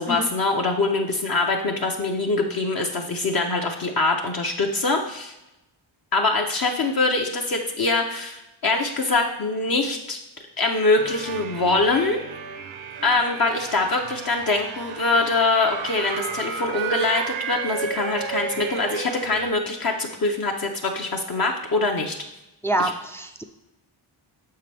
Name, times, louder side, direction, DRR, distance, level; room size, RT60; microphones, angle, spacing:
voice 1, 0.0-5.3 6.1-10.2 10.6-12.2 13.0-22.1 22.8-22.9, left 3 dB, 45° left, 1 dB, 0.7 m, -23 dB
sound 1, 11.0-19.5, right 7 dB, 70° right, 0.7 m, -33 dB
voice 2, 22.6-23.4, right 1 dB, 5° left, 6 dB, 0.3 m, -26 dB
6.7 x 5.7 x 3.3 m, 0.93 s
cardioid pair, 80°, 50 cm